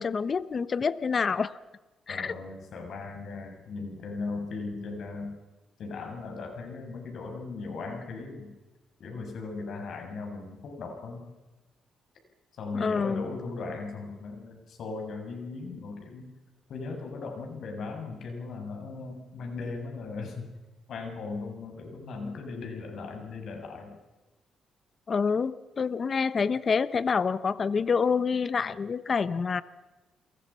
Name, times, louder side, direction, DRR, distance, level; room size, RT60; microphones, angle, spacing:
voice 1, 0.0-1.5 2.1-2.3 12.7-13.3 25.1-29.6, left 5 dB, 40° left, 15 dB, 1.0 m, -27 dB
voice 2, 2.1-5.3 5.8-8.5 9.0-11.3 12.6-16.3 16.7-20.5 20.9-24.0, left 3 dB, 65° left, 3 dB, 6.9 m, -38 dB
30.0 x 22.5 x 5.7 m, 1.1 s
cardioid pair, 90°, 0 cm